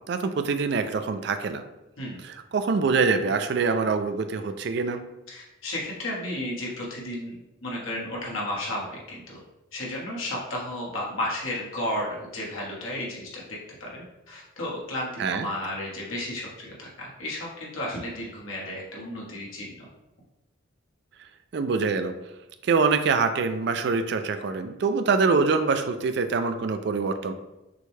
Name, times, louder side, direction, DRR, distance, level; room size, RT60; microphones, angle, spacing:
voice 1, 0.1-1.6 2.2-5.0 15.2-15.5 21.5-22.1 22.6-27.3, right 4 dB, 55° right, 9 dB, 0.3 m, -24 dB
voice 2, 5.3-7.3 7.6-9.4 9.7-13.4 13.8-19.9, left 1 dB, 90° left, -4 dB, 1.3 m, -33 dB
6.1 x 2.2 x 3.2 m, 0.98 s
head